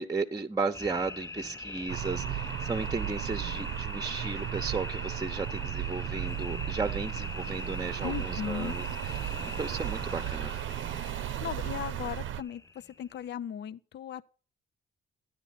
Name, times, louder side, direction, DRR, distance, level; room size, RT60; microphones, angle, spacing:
voice 1, 0.0-10.5, right 4 dB, 20° right, 0.9 m, -35 dB
sound 1, 0.7-13.3, left 3 dB, 15° left, 0.7 m, -42 dB
sound 2, 1.9-12.4, right 11 dB, 75° right, 0.6 m, -35 dB
voice 2, 8.0-8.7 11.4-14.3, left 9 dB, 60° left, 0.6 m, -37 dB
13.0 x 10.5 x 4.2 m
cardioid pair, 90°, 20 cm